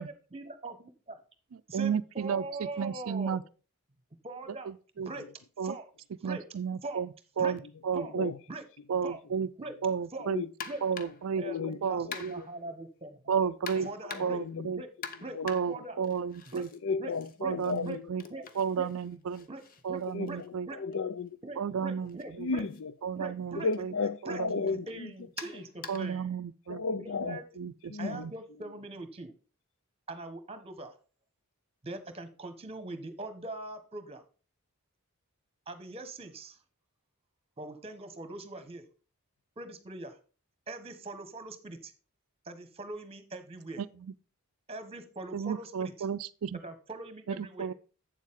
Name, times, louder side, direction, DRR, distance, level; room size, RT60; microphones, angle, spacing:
voice 1, 0.0-1.2 1.7-3.4 4.2-4.7 5.0-5.2 5.6-5.9 6.2-6.4 6.8-7.0 7.4-7.5 7.9-8.1 8.5-8.6 9.0-9.2 9.6-9.7 10.1-10.3 10.7-10.8 11.4-13.2 13.8-14.4 14.7-14.9 15.2-15.4 15.7-16.0 16.5-16.6 17.0-17.1 17.4-17.5 17.8-18.0 18.3-18.5 18.8-18.9 19.5-19.6 19.9-20.0 20.3-20.4 20.7-20.8 21.4-22.6 23.1-23.7 24.2-24.4 24.9-26.4 27.0-27.4 28.0-29.3 30.1-30.9 31.8-34.2 35.7-36.6 37.6-38.8 39.6-40.2 40.7-41.9 42.4-43.8 44.7-45.9 46.5-47.7, right 2 dB, 25° right, 1.3 m, -42 dB
voice 2, 1.7-3.4 4.7-5.1 5.6-5.7 6.2-7.1 7.4-8.3 8.9-9.5 9.8-10.4 10.8-11.4 11.8-12.3 13.3-13.9 14.2-14.8 15.4-16.7 17.4-18.2 18.6-19.5 19.8-20.7 21.6-22.5 23.0-23.9 24.2-24.7 25.9-26.8 27.3-28.3 43.8-43.9 45.3-46.6 47.3-47.7, right 7 dB, 65° right, 0.4 m, -32 dB
voice 3, 8.0-8.4 8.9-9.1 10.3-10.5 11.3-12.5 13.4-14.7 15.3-15.7 16.8-18.1 20.1-21.4 22.4-22.9 23.5-25.1 25.5-25.6 25.9-26.1 26.7-27.4 27.9-28.3, left 4 dB, 65° left, 0.5 m, -35 dB
sound 1, 10.6-11.3 12.1-12.6 13.7-14.5 15.0-16.8 17.1-21.0 22.1-22.2 22.7-22.8 23.7-23.9 25.4-26.2, left 6 dB, 40° left, 0.9 m, -45 dB
8.1 x 7.4 x 3.6 m
head